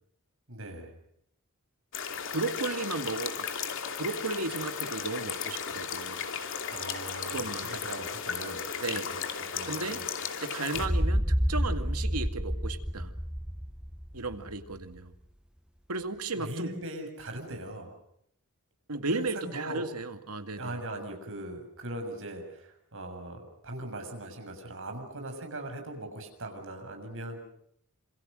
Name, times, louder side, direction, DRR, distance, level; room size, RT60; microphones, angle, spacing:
voice 1, 0.5-0.9 6.7-10.1 16.4-18.0 19.1-19.8 20.6-27.4, right 1 dB, 60° right, 5 dB, 6.9 m, -40 dB
sound 1, 1.9-10.9, left 7 dB, 60° left, 2.8 m, -35 dB
voice 2, 2.3-3.5 4.0-6.2 7.3-7.7 8.8-9.2 9.6-10.0 10.4-11.2 11.5-13.1 14.1-15.1 15.9-16.7 18.9-20.8, right 3 dB, 85° right, 8 dB, 2.2 m, -34 dB
sound 2, 10.7-14.6, equal, 5° right, 1.0 m, -29 dB
27.5 x 27.0 x 6.4 m, 0.71 s
head